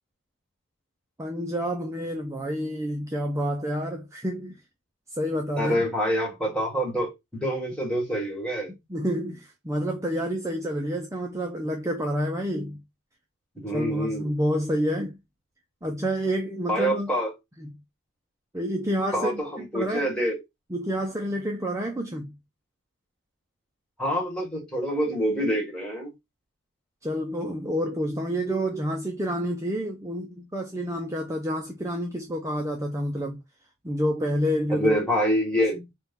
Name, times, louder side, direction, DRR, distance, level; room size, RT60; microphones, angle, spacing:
voice 1, 1.2-4.6 5.1-5.8 8.9-12.8 13.7-15.2 15.8-17.1 17.6-17.7 18.5-20.1 20.7-22.3 27.0-33.4 33.8-35.0, equal, 15° right, 0.5 m, -29 dB
voice 2, 5.6-8.7 13.6-14.3 16.7-17.3 19.1-20.4 24.0-26.1 34.7-35.8, equal, 5° left, 1.4 m, -26 dB
4.2 x 2.3 x 3.5 m
head